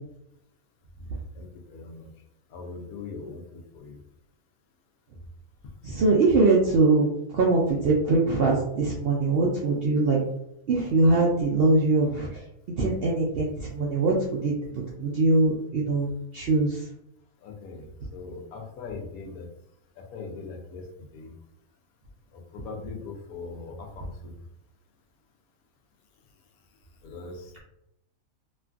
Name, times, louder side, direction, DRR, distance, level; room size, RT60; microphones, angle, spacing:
voice 1, 1.3-2.1 2.5-4.0 17.4-19.5 20.0-20.9 21.1-21.3 22.3-24.3 27.0-27.6, left 4 dB, 90° left, 2 dB, 1.1 m, -40 dB
voice 2, 5.8-7.1 7.3-10.2 10.7-12.3 12.8-16.8, right 3 dB, 70° right, -3 dB, 0.5 m, -22 dB
2.9 x 2.5 x 2.3 m, 0.80 s
omnidirectional pair, 1.5 m